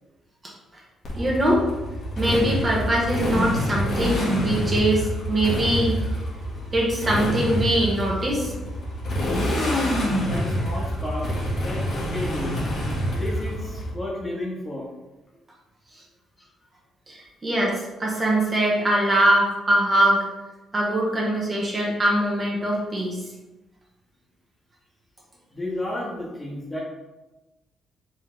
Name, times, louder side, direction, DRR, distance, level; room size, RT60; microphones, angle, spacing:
Motorcycle, 1.0-13.9, equal, 60° left, 1.4 m, -26 dB
voice 1, 1.2-1.6 2.2-6.0 6.7-8.5 17.1-20.2 20.7-23.2, right 1 dB, 30° right, -3 dB, 1.3 m, -22 dB
voice 2, 10.2-11.3 11.6-11.8 12.1-12.6 13.1-14.9 25.5-26.8, left 1 dB, 25° left, -3 dB, 1.3 m, -32 dB
4.5 x 3.3 x 3.3 m, 1.1 s
cardioid pair, 90°, 0 cm